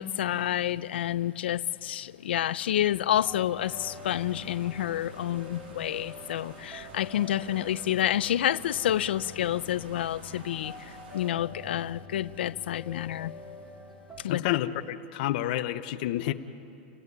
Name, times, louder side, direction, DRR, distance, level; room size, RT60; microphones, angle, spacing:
voice 1, 0.0-13.3 14.2-14.4, left 12 dB, 90° left, 0.6 m, -29 dB
sound 1, 3.1-14.2, left 2 dB, 10° right, 2.3 m, -47 dB
sound 2, 3.6-11.3, right 3 dB, 80° right, 2.9 m, -50 dB
voice 2, 14.2-16.3, left 13 dB, 55° left, 0.9 m, -29 dB
28.5 x 16.5 x 9.7 m
supercardioid pair, 145°, 6 cm